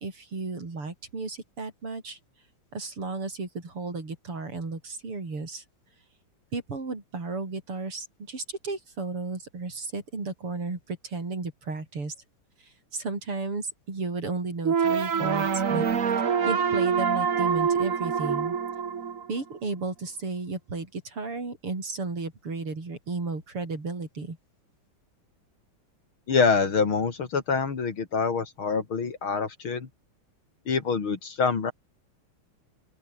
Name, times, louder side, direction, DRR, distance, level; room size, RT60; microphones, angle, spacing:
voice 1, 0.0-2.2 2.7-5.6 6.5-12.1 12.6-16.1 16.5-18.6 19.3-24.4, right 3 dB, 80° right, 6.4 m, -34 dB
sound 1, 14.6-19.7, right 6 dB, 40° right, 1.6 m, -25 dB
voice 2, 26.3-29.9 30.7-31.7, left 5 dB, 65° left, 3.5 m, -25 dB
open air
omnidirectional pair, 2.4 m